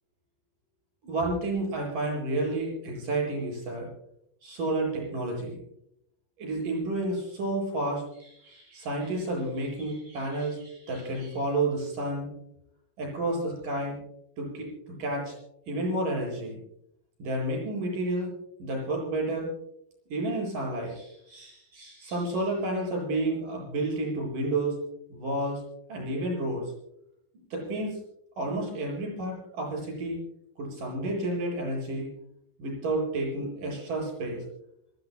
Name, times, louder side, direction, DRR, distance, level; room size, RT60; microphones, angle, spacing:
voice 1, 1.0-3.9 4.4-5.6 6.4-12.3 13.0-14.0 14.4-14.7 15.0-15.3 15.7-16.6 17.2-18.3 18.6-19.5 20.1-24.7 25.1-25.6 25.9-26.6 27.5-28.0 28.4-30.2 30.6-32.1 32.6-34.4, right 2 dB, 45° right, -1 dB, 8.7 m, -30 dB
29.0 x 18.5 x 2.2 m, 0.76 s
omnidirectional pair, 5.2 m